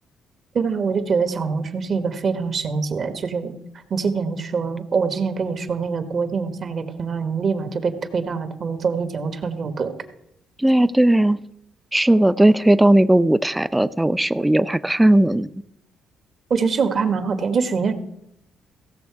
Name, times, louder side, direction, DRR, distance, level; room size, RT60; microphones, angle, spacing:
voice 1, 0.5-3.5 3.9-9.9 16.5-17.9, right 5 dB, 50° right, 8 dB, 1.3 m, -24 dB
voice 2, 10.6-11.4 11.9-15.5, right 1 dB, 10° right, 16 dB, 0.5 m, -17 dB
16.5 x 6.4 x 4.7 m, 0.78 s
cardioid pair, 90°, 0 cm